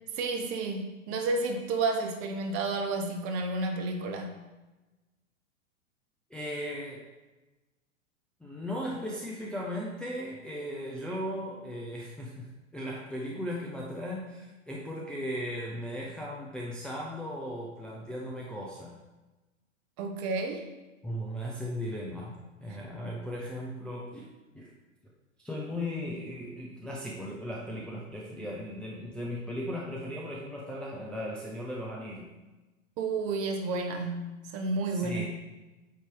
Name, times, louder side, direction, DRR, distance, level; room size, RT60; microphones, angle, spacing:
voice 1, 0.1-4.4 20.0-20.7 33.0-35.3, right 3 dB, 35° right, 4 dB, 1.0 m, -31 dB
voice 2, 6.3-7.0 8.4-19.0 21.0-24.3 24.5-24.7 25.4-32.3 34.9-35.3, equal, ahead, -4 dB, 0.5 m, -37 dB
8.4 x 3.0 x 4.6 m, 1.1 s
figure-of-eight pair, 100°, 40 cm